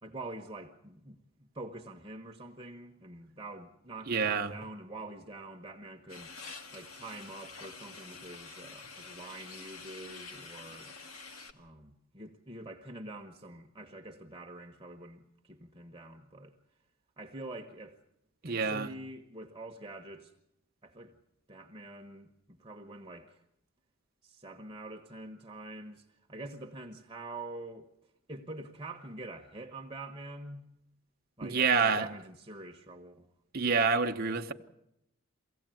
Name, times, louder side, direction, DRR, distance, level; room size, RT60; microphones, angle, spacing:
voice 1, 0.0-6.3 6.7-10.9 11.5-16.5 17.2-18.0 18.4-20.3 20.8-21.1 21.5-23.4 24.2-27.9 28.3-30.6 31.4-33.3, right 2 dB, 20° right, 1.1 m, -46 dB
voice 2, 4.1-4.5 18.4-18.9 31.4-32.1 33.5-34.5, right 5 dB, 45° right, 0.9 m, -27 dB
sound 1, 6.1-11.5, left 4 dB, 85° left, 2.0 m, -47 dB
23.5 x 16.5 x 9.1 m
head